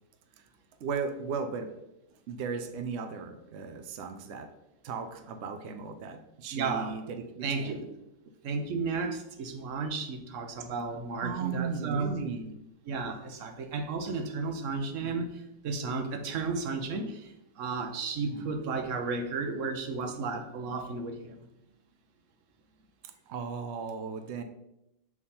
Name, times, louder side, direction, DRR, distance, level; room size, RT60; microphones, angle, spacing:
voice 1, 0.8-1.8 2.3-4.5 4.8-7.8 11.2-12.5 14.1-14.2 15.0-15.3 18.2-18.5 23.3-24.4, right 5 dB, 75° right, 7 dB, 0.6 m, -36 dB
voice 2, 6.5-7.0 7.4-7.8 8.4-12.1 12.9-15.3 15.6-21.4, right 4 dB, 60° right, 6 dB, 1.0 m, -33 dB
7.0 x 3.6 x 4.2 m, 0.88 s
omnidirectional pair, 1.8 m